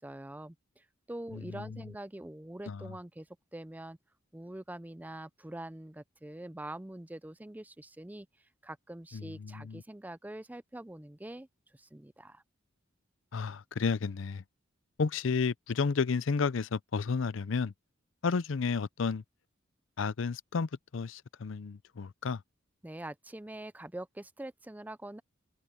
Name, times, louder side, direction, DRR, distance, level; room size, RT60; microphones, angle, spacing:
voice 1, 0.0-4.0 4.3-11.5 11.7-12.4 22.8-25.2, right 1 dB, 10° right, 0.5 m, -44 dB
voice 2, 1.3-1.8 2.7-2.9 9.1-9.8 13.3-14.4 15.0-17.7 18.2-19.2 20.0-22.4, left 5 dB, 70° left, 0.5 m, -32 dB
head